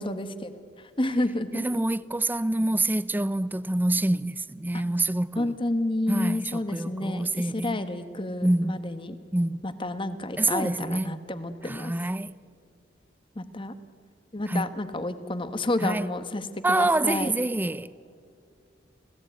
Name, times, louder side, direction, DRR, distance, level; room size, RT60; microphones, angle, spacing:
voice 1, 0.0-1.8 5.4-9.2 9.6-11.9 13.3-13.7 14.3-17.3, left 1 dB, 30° left, 1.2 m, -30 dB
voice 2, 1.5-5.6 6.1-7.8 8.4-8.8 9.3-9.7 10.4-11.2 11.6-12.3 14.5-14.7 15.8-16.1 16.6-17.9, right 2 dB, 10° right, 0.5 m, -26 dB
26.5 x 16.5 x 9.4 m
head